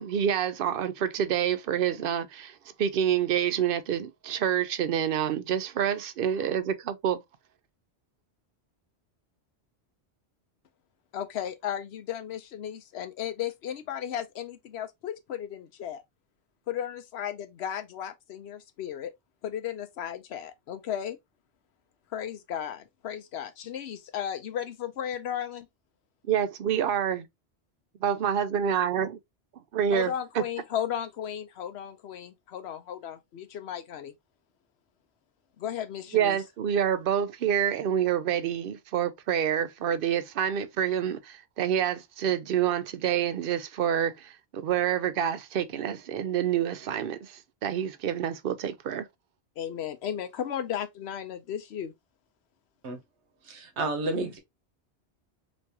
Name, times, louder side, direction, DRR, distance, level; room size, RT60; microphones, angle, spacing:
voice 1, 0.0-7.2 26.3-27.3 28.0-29.2 29.7-30.4 36.1-47.3 47.6-49.1, right 9 dB, 60° right, 0.7 m, -27 dB
voice 2, 11.1-16.0 16.7-19.1 19.4-21.2 22.1-25.7 29.9-34.1 35.6-36.4 49.6-51.9, left 9 dB, 75° left, 0.9 m, -35 dB
voice 3, 53.5-54.4, right 2 dB, 85° right, 1.2 m, -31 dB
3.5 x 3.0 x 2.8 m
omnidirectional pair, 1.1 m